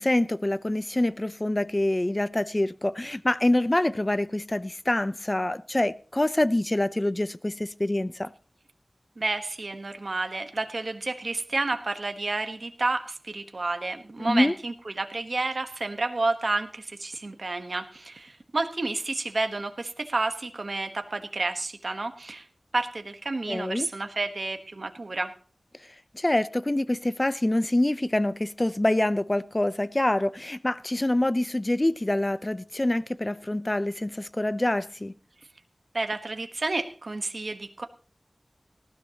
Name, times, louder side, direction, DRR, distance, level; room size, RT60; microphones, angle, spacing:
voice 1, 0.0-8.3 14.2-14.5 23.5-23.9 26.1-35.1, left 1 dB, 30° left, 0.7 m, -26 dB
voice 2, 9.2-22.5 22.7-25.4 35.9-37.9, right 3 dB, 65° right, 1.2 m, -30 dB
19.0 x 13.5 x 2.9 m
wide cardioid pair, 50°, 0 cm